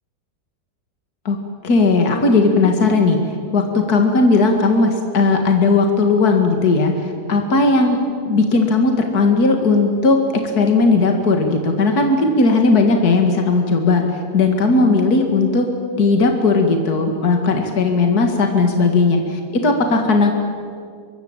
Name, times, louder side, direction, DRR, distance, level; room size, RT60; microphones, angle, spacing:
voice 1, 1.6-3.2 3.5-8.0 8.3-10.2 10.6-14.1 14.3-15.7 16.0-20.3, left 3 dB, 60° left, 4 dB, 2.6 m, -16 dB
25.0 x 22.0 x 8.9 m, 2.2 s
omnidirectional pair, 1.8 m